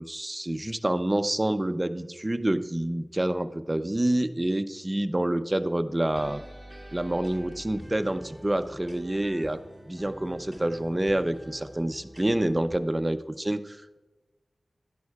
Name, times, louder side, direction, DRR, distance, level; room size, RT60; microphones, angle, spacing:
voice 1, 0.0-6.4 6.9-9.6 9.9-14.0, right 1 dB, 20° right, 10 dB, 0.6 m, -27 dB
sound 1, 6.1-12.8, equal, 5° left, 2.2 m, -45 dB
11.0 x 10.5 x 2.4 m, 1.1 s
wide cardioid pair, 60°, 0 cm